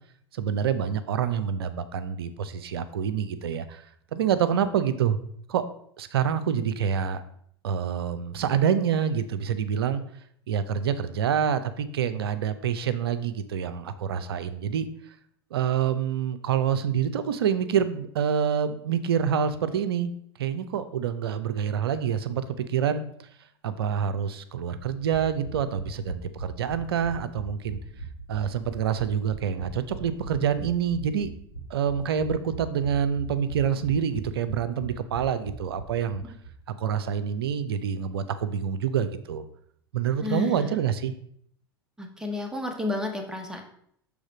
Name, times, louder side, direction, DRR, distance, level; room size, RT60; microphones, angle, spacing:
voice 1, 0.3-3.8 4.1-5.2 5.5-5.7 6.0-7.2 7.6-10.0 10.5-14.9 15.5-20.1 20.4-23.0 23.6-27.8 28.3-31.3 31.7-36.2 36.7-39.4 39.9-41.1, right 8 dB, 70° right, 12 dB, 0.5 m, -27 dB
sound 1, 24.8-36.5 36.8-36.9 37.1-37.2, right 3 dB, 70° left, 2.1 m, -40 dB
voice 2, 40.2-40.8 42.0-43.6, left 3 dB, 5° right, 2 dB, 1.2 m, -31 dB
6.3 x 3.4 x 4.9 m, 0.67 s
figure-of-eight pair, 80°, 13 cm